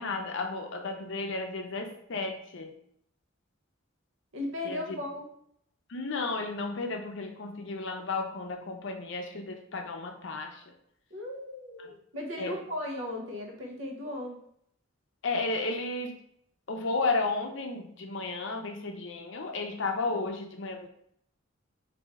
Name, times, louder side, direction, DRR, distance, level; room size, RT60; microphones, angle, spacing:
voice 1, 0.0-2.7 4.6-5.0 5.9-10.7 12.4-12.6 15.2-16.2 16.7-20.9, left 3 dB, 60° left, 3 dB, 0.6 m, -33 dB
voice 2, 4.3-5.3 11.1-14.4, left 1 dB, 70° right, 0 dB, 0.9 m, -37 dB
4.2 x 2.7 x 3.4 m, 0.70 s
head